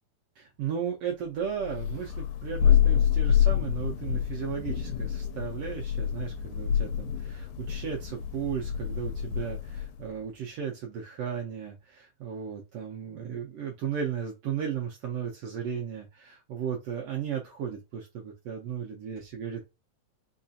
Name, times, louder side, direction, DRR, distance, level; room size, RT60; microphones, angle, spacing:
voice 1, 0.4-19.7, right 8 dB, 85° right, 1.3 m, -35 dB
Thunder, 1.6-10.0, left 9 dB, 85° left, 2.0 m, -27 dB
4.7 x 2.4 x 2.6 m
omnidirectional pair, 3.5 m